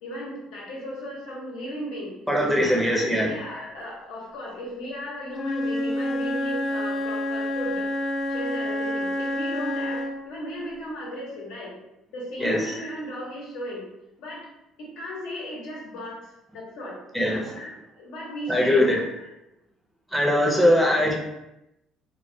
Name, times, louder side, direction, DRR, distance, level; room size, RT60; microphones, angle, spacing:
voice 1, 0.0-2.1 2.5-7.9 8.3-11.7 12.1-13.8 14.2-14.4 14.8-16.2 16.5-17.0 17.5-19.3, equal, 85° left, -4 dB, 0.8 m, -36 dB
voice 2, 2.3-3.3 12.4-12.6 17.1-17.6 18.5-19.0 20.1-21.1, left 1 dB, ahead, -2 dB, 0.5 m, -21 dB
Wind instrument woodwind instrument, 5.3-10.3, left 1 dB, 55° left, 0.4 m, -28 dB
2.2 x 2.2 x 2.6 m, 0.88 s
cardioid pair, 120°, 0 cm